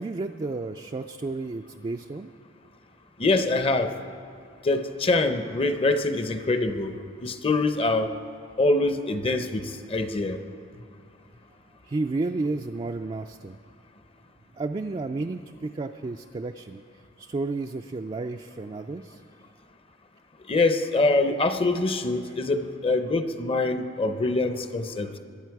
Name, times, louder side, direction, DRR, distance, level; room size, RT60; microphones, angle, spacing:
voice 1, 0.0-2.3 11.8-13.6 14.6-16.8 17.2-19.2, right 3 dB, 30° right, 4 dB, 0.3 m, -32 dB
voice 2, 3.2-3.9 4.6-7.0 7.2-8.1 8.6-10.4 20.5-25.1, left 2 dB, 30° left, 9 dB, 0.7 m, -24 dB
21.5 x 9.2 x 4.7 m, 2.6 s
head